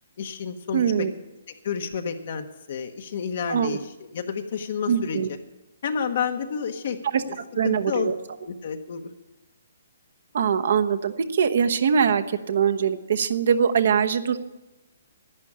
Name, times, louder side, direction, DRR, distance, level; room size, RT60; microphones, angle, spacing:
voice 1, 0.2-1.1 1.6-5.2 5.8-7.3 7.6-8.1 8.5-9.1, left 6 dB, 50° left, 7 dB, 1.1 m, -30 dB
voice 2, 0.7-1.1 3.5-3.8 4.9-5.3 7.1-7.2 7.6-8.2 10.3-14.4, right 7 dB, 55° right, 10 dB, 1.0 m, -22 dB
11.0 x 9.8 x 8.7 m, 1.0 s
hypercardioid pair, 165°, 0 cm